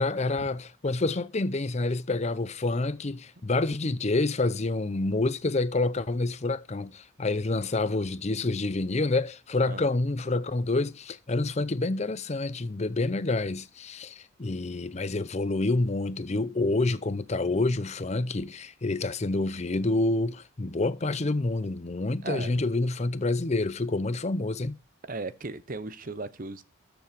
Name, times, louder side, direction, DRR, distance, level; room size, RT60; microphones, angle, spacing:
voice 1, 0.0-24.8, left 2 dB, 35° left, 0.6 m, -28 dB
voice 2, 22.2-22.6 25.1-26.6, right 3 dB, 40° right, 0.8 m, -36 dB
13.0 x 7.0 x 5.1 m
head